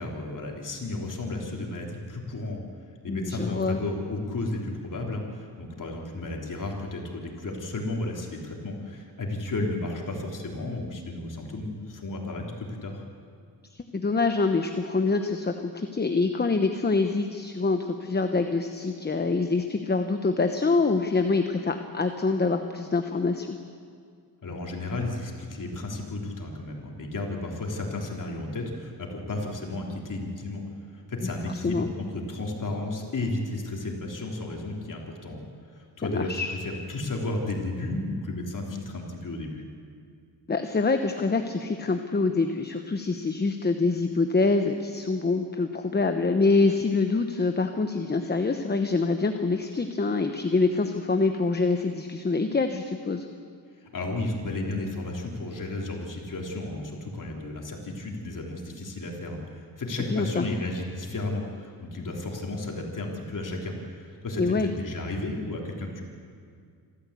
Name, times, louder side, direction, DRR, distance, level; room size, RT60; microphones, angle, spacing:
voice 1, 0.0-2.6 3.0-13.0 24.4-30.6 30.9-35.4 35.7-39.6 53.9-66.0, left 2 dB, 50° left, 0 dB, 3.7 m, -33 dB
voice 2, 3.1-3.8 13.7-23.6 31.5-31.9 36.0-36.5 40.5-53.3 60.1-60.5 64.4-64.7, left 3 dB, 25° left, 7 dB, 1.0 m, -25 dB
26.5 x 13.5 x 8.4 m, 2.2 s
wide cardioid pair, 105°, 39 cm